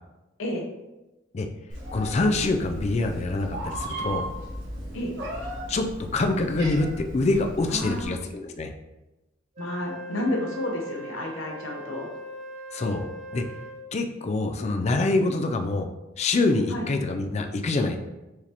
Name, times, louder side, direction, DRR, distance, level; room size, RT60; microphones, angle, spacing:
Meow, 1.7-8.1, right 1 dB, 65° right, 1.3 m, -36 dB
voice 1, 1.9-4.3 5.7-5.9 6.1-8.7 12.7-13.1 13.3-13.4 13.9-15.9 16.2-18.0, left 2 dB, 35° left, 5 dB, 0.3 m, -25 dB
voice 2, 7.7-8.2 9.6-12.1 16.7-16.9, left 1 dB, 80° left, 0 dB, 0.9 m, -30 dB
Wind instrument woodwind instrument, 9.5-13.9, right 2 dB, 35° right, 0.6 m, -40 dB
4.7 x 2.9 x 3.4 m, 1.0 s
head